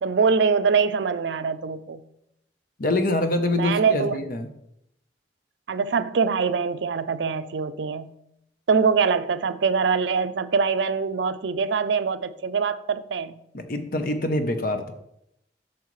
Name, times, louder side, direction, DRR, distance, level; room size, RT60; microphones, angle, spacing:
voice 1, 0.0-2.0 3.6-4.2 5.7-8.1 8.7-13.4, right 5 dB, 80° right, 0.4 m, -23 dB
voice 2, 2.8-4.5 13.5-14.9, left 1 dB, 50° left, 0.8 m, -25 dB
9.2 x 6.4 x 3.1 m
head